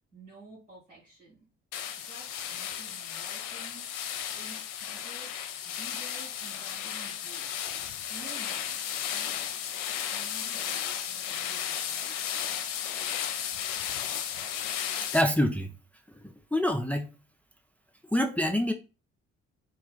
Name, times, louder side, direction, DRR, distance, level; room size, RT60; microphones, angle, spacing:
voice 1, 0.1-1.5 2.0-3.9 4.4-5.4 5.6-7.6 7.9-9.6 10.1-12.1, right 3 dB, 90° right, 2.0 m, -51 dB
sound 1, 1.7-15.2, left 9 dB, 60° left, 0.6 m, -34 dB
voice 2, 15.1-15.7 16.2-17.1 18.1-18.7, left 1 dB, 5° left, 0.4 m, -26 dB
3.8 x 2.4 x 3.9 m
figure-of-eight pair, 45°, 36 cm